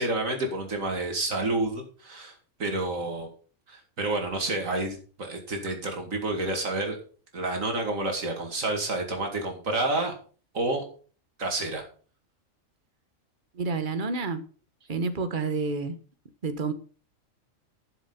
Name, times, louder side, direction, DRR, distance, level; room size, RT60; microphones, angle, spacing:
voice 1, 0.0-3.3 3.7-7.0 7.3-10.1 10.5-10.8 11.4-11.8, right 2 dB, 85° right, 3 dB, 2.6 m, -29 dB
voice 2, 13.5-14.4 14.9-16.0 16.4-16.7, right 4 dB, 40° right, 10 dB, 1.3 m, -29 dB
11.5 x 7.2 x 5.8 m, 0.41 s
omnidirectional pair, 1.4 m